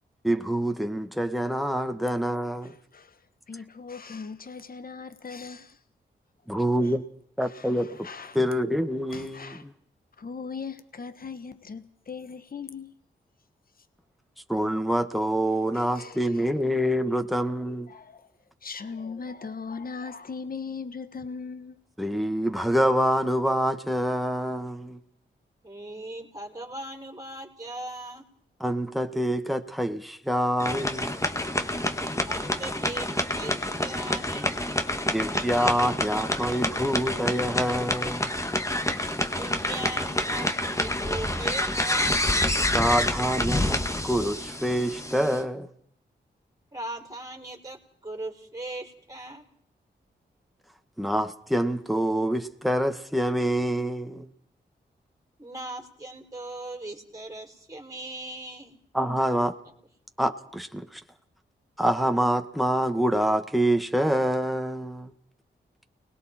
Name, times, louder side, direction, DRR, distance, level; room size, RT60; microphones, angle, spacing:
voice 1, 0.2-2.7 6.5-7.0 7.4-8.1 8.3-9.7 14.5-17.9 22.0-25.0 28.6-31.2 35.1-38.3 42.7-43.8 44.0-45.7 51.0-54.3 58.9-59.5 60.2-61.0 61.8-65.1, equal, ahead, 1.9 m, -26 dB
voice 2, 2.6-5.8 6.8-6.9 7.4-8.4 9.1-9.6 10.2-13.0 15.4-16.5 16.8-17.0 17.3-17.4 17.9-18.3 18.6-21.8, left 5 dB, 50° left, 1.5 m, -39 dB
voice 3, 25.6-28.2 32.2-34.5 39.3-42.2 46.7-49.4 55.4-58.8 59.6-59.7, right 2 dB, 20° right, 4.6 m, -39 dB
sound 1, 30.6-45.4, left 1 dB, 15° left, 1.9 m, -28 dB
29.0 x 20.5 x 4.6 m
cardioid pair, 55°, 19 cm